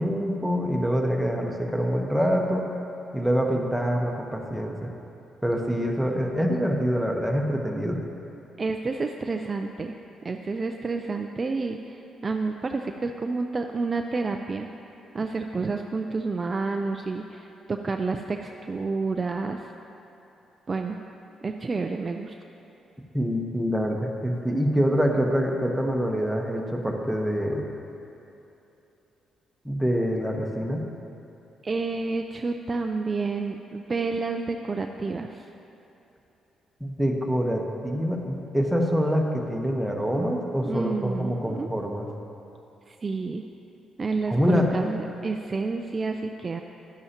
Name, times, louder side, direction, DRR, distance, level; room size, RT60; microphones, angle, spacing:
voice 1, 0.0-2.7 3.1-4.9 5.4-8.0 23.1-27.6 29.6-30.8 36.8-42.1 44.3-44.7, equal, ahead, 0 dB, 1.1 m, -25 dB
voice 2, 8.6-10.0 10.2-14.7 15.1-19.7 20.7-21.0 21.4-22.4 31.6-35.5 40.6-41.7 42.9-43.4 44.0-46.6, right 3 dB, 30° right, 4 dB, 0.4 m, -29 dB
11.0 x 10.5 x 3.0 m, 3.0 s
cardioid pair, 90°, 0 cm